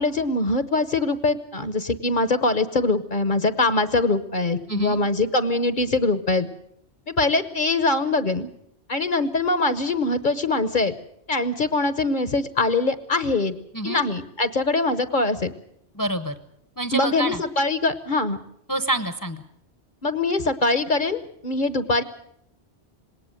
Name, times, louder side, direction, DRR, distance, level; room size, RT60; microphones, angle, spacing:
voice 1, 0.0-6.5 7.1-8.5 8.9-10.9 11.3-13.5 13.8-15.5 16.9-18.4 20.0-22.0, left 2 dB, 50° left, 12 dB, 1.1 m, -23 dB
voice 2, 4.7-5.0 13.7-14.0 15.9-16.3 16.8-17.4 18.7-19.4, right 1 dB, 20° left, 10 dB, 0.9 m, -27 dB
20.0 x 18.5 x 7.7 m, 0.73 s
omnidirectional pair, 1.1 m